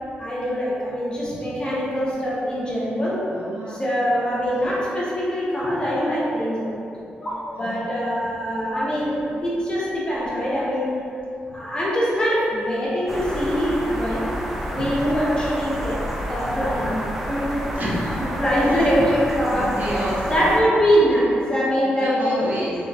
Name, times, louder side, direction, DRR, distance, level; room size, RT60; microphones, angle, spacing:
voice 1, 0.2-3.2 3.7-10.9 11.5-14.3 14.7-16.0 16.3-17.0 17.3-17.6 18.4-19.8 20.3-22.5, equal, 25° left, -7 dB, 0.7 m, -23 dB
voice 2, 3.3-3.8 4.6-4.7 5.6-5.7 7.5-7.9 14.7-14.9 16.7-16.9 17.8-19.0 19.5-20.5 21.8-22.8, equal, 50° right, -6 dB, 0.6 m, -30 dB
sound 1, 13.1-20.6, equal, 5° right, 0.3 m, -30 dB
3.5 x 2.1 x 2.6 m, 2.6 s
cardioid pair, 115°, 4 cm